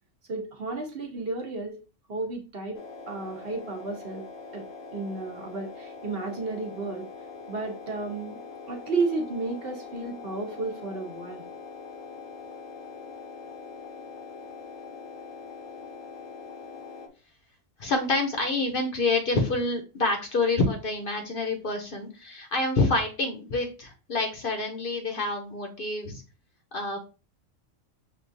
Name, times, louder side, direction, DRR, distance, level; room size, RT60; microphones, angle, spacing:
voice 1, 0.3-1.8 2.1-2.8 3.1-4.2 4.5-4.6 4.9-7.1 7.5-8.4 8.7-11.4, right 3 dB, 50° right, 2 dB, 1.0 m, -32 dB
sound 1, 2.7-17.1, left 4 dB, 80° left, 1.0 m, -43 dB
voice 2, 17.8-26.2 26.7-27.0, left 2 dB, 50° left, 4 dB, 0.8 m, -27 dB
6.4 x 2.3 x 2.6 m, 0.33 s
omnidirectional pair, 1.3 m